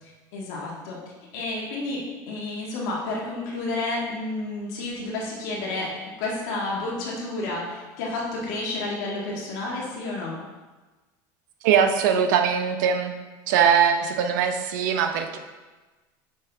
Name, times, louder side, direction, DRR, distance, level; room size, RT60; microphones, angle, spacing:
voice 1, 0.0-1.0 1.3-10.4, left 2 dB, 75° left, -4 dB, 1.8 m, -31 dB
voice 2, 11.6-13.2 13.5-15.4, right 7 dB, 90° right, 6 dB, 0.7 m, -21 dB
6.3 x 5.8 x 3.4 m, 1.2 s
cardioid pair, 160°, 10 cm